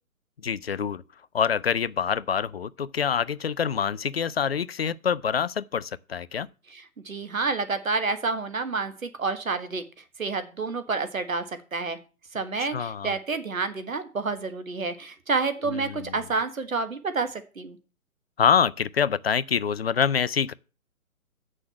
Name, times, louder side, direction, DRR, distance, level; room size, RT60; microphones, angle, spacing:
voice 1, 0.4-1.0 1.3-6.5 12.6-13.1 15.7-16.2 18.4-20.5, left 7 dB, 45° left, 0.4 m, -26 dB
voice 2, 6.7-9.8 10.2-12.0 12.3-17.8, right 4 dB, 70° right, 1.6 m, -29 dB
7.5 x 6.4 x 7.7 m
figure-of-eight pair, 130°, 43 cm